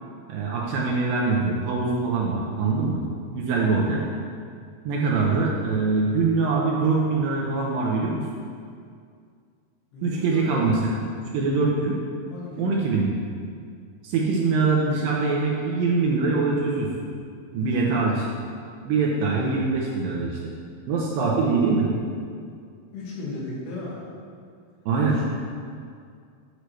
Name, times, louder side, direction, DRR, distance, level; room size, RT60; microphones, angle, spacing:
voice 1, 0.3-3.0 3.3-4.0 4.9-8.2 10.0-10.8 11.3-12.0 12.6-13.1 14.0-16.9 17.5-18.3 18.8-20.5 20.9-21.9 24.9-25.3, right 4 dB, 75° right, -3 dB, 2.1 m, -23 dB
voice 2, 9.9-10.8 12.3-12.9 17.6-18.0 22.9-24.0 25.1-25.3, left 2 dB, 85° left, -7 dB, 3.8 m, -35 dB
8.3 x 6.5 x 3.1 m, 2.2 s
omnidirectional pair, 4.5 m